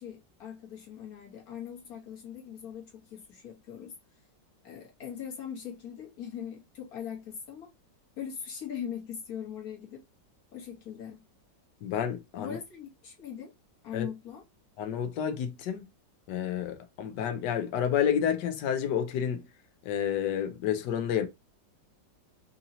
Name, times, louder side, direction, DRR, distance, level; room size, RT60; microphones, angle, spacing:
voice 1, 0.0-3.9 4.6-7.7 8.2-10.0 10.5-11.2 12.4-13.5 13.8-14.4, left 8 dB, 55° left, 1.5 m, -41 dB
voice 2, 11.8-12.6 13.9-14.1 14.8-15.8 16.3-19.5 19.8-21.3, left 9 dB, 75° left, 1.3 m, -30 dB
3.9 x 2.8 x 2.7 m
omnidirectional pair, 2.0 m